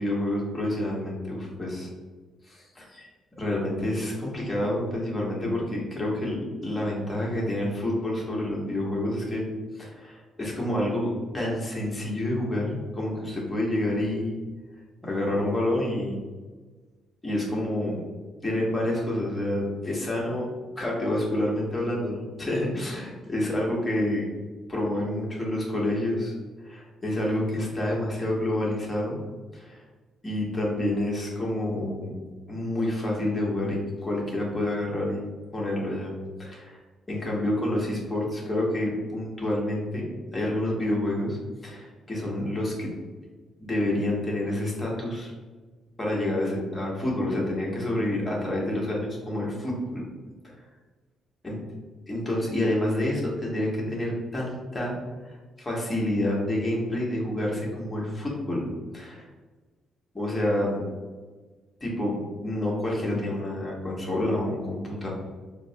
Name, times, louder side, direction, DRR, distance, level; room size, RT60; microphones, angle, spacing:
voice 1, 0.0-1.9 2.4-3.1 3.4-9.4 9.7-14.4 15.0-16.2 17.2-18.0 18.4-20.5 20.8-24.2 24.7-29.2 29.5-29.9 30.2-32.1 32.5-35.2 35.5-36.8 37.1-41.4 41.6-42.9 43.6-45.3 46.0-50.0 50.4-50.7 51.4-51.6 52.1-54.9 55.2-58.7 58.9-59.3 60.1-60.8 61.8-65.1, left 1 dB, 20° left, -4 dB, 1.1 m, -28 dB
4.1 x 2.1 x 2.8 m, 1.3 s
cardioid pair, 90°, 0 cm